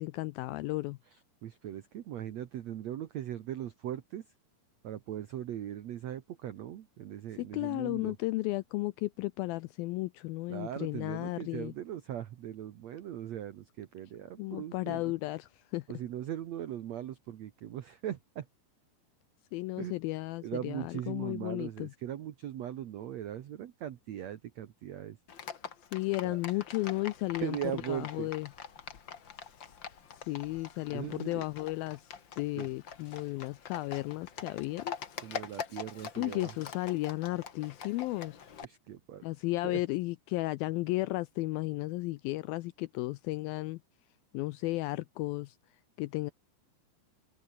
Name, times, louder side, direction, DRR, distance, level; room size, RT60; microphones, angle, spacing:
voice 1, 0.0-1.0 7.4-11.7 14.4-15.8 19.5-21.9 25.9-27.6 27.9-28.5 30.3-32.1 32.4-35.0 36.2-38.4 39.2-43.8 44.3-45.6 46.0-46.3, left 20 dB, 90° left, 2.1 m, -34 dB
voice 2, 1.1-4.3 4.8-8.1 10.5-15.1 15.9-18.5 19.8-19.9 20.4-25.2 26.2-26.4 27.4-28.3 30.9-31.4 32.6-32.7 35.2-36.5 38.6-39.2 39.6-39.8, right 11 dB, 85° right, 1.5 m, -39 dB
Livestock farm animals working animals, 25.3-38.7, left 7 dB, 55° left, 1.3 m, -44 dB
omnidirectional pair, 4.9 m